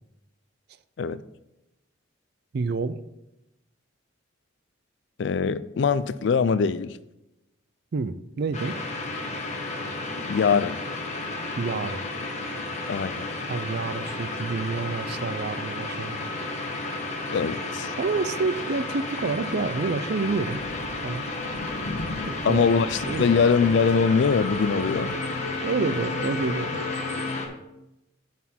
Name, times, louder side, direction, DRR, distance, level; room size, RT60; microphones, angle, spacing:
voice 1, 2.5-3.0 7.9-8.8 11.6-12.0 13.5-16.3 18.0-20.6 21.0-21.3 22.3-22.6 23.1-23.3 25.6-26.8, right 4 dB, 50° right, 0.4 m, -28 dB
voice 2, 5.2-7.0 10.3-10.8 12.9-13.3 17.3-17.9 22.4-25.1, left 5 dB, 60° left, 0.3 m, -22 dB
sound 1, 8.5-27.5, left 2 dB, 35° left, 1.0 m, -32 dB
Thunder, 20.3-25.3, left 2 dB, 85° left, 1.2 m, -40 dB
10.5 x 4.3 x 4.3 m
head